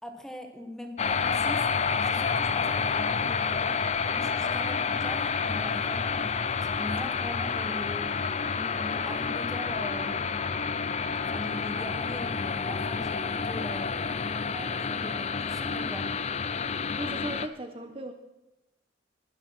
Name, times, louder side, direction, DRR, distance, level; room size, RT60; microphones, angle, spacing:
voice 1, 0.0-3.8 4.1-6.4 6.7-8.1 8.5-10.4 11.3-14.0 14.5-16.1, left 1 dB, 5° left, 5 dB, 1.4 m, -41 dB
sound 1, 1.0-17.5, left 5 dB, 35° left, 0.5 m, -29 dB
voice 2, 17.0-18.1, right 1 dB, 30° right, 5 dB, 1.0 m, -37 dB
21.0 x 7.3 x 6.0 m, 0.95 s
head